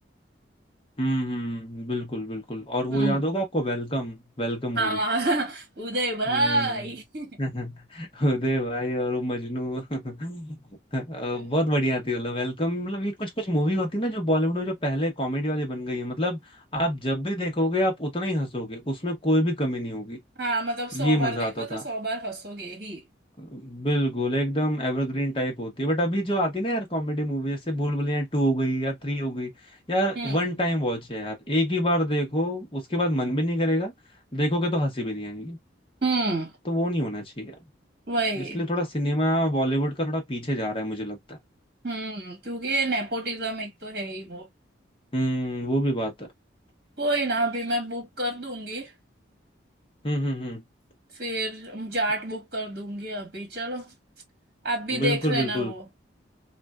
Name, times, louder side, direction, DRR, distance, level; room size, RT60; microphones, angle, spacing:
voice 1, 1.0-5.0 6.3-6.9 7.4-10.6 10.9-16.4 16.7-20.2 20.9-21.8 23.4-29.5 29.9-33.9 34.3-35.6 36.7-37.5 38.4-41.4 45.1-46.3 50.0-50.6 54.9-55.7, equal, 25° left, 0.9 m, -27 dB
voice 2, 2.9-3.3 4.8-7.4 11.3-11.4 20.4-23.0 30.2-30.4 36.0-36.5 38.1-38.6 41.8-44.5 47.0-48.9 51.1-53.9 54.6-55.9, right 2 dB, 55° right, 1.6 m, -28 dB
3.2 x 2.5 x 2.3 m
head